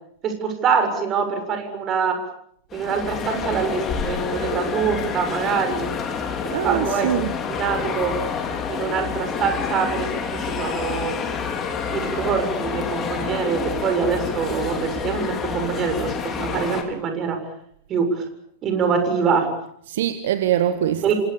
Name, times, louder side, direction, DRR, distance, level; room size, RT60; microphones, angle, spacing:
voice 1, 0.2-2.2 2.7-5.9 6.4-7.1 7.5-8.1 8.7-11.1 11.9-17.4 17.9-18.2 18.6-19.5 21.0-21.1, right 6 dB, 30° right, 7 dB, 7.3 m, -24 dB
sound 1, 2.7-16.8, left 6 dB, 25° left, 4.9 m, -28 dB
voice 2, 6.5-7.3 19.9-21.1, right 11 dB, 55° right, 12 dB, 1.6 m, -23 dB
29.0 x 26.0 x 7.3 m, 0.70 s
figure-of-eight pair, 90°, 0 cm